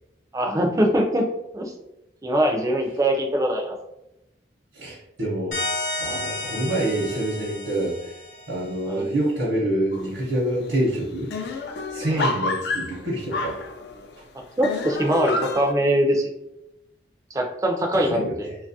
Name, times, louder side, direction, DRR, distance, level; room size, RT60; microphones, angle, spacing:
voice 1, 0.3-1.3 1.5-1.7 2.2-3.8 8.9-9.1 12.1-12.3 14.6-16.3 17.3-18.5, right 1 dB, 20° right, 2 dB, 0.3 m, -22 dB
voice 2, 4.7-5.6 6.0-8.2 8.5-11.3 11.9-13.6 17.9-18.6, right 1 dB, 75° right, -6 dB, 0.7 m, -26 dB
sound 1, 5.5-8.9, left 1 dB, 45° left, 0.8 m, -32 dB
sound 2, 9.9-10.3 10.7-10.8 11.0-14.1 14.6-15.7, left 3 dB, 70° left, 0.3 m, -29 dB
2.8 x 2.3 x 2.6 m, 0.87 s
head